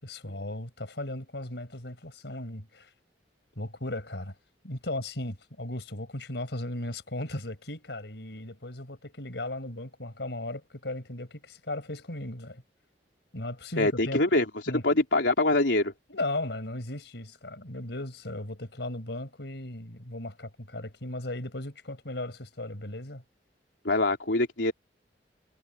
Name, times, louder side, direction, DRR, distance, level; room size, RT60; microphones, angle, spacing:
voice 1, 0.0-2.9 3.6-4.3 4.6-12.6 13.3-14.2 14.7-14.8 16.1-23.2, left 1 dB, 70° left, 5.6 m, -36 dB
voice 2, 13.8-14.5 14.8-15.9 23.9-24.7, left 2 dB, 90° left, 3.5 m, -24 dB
head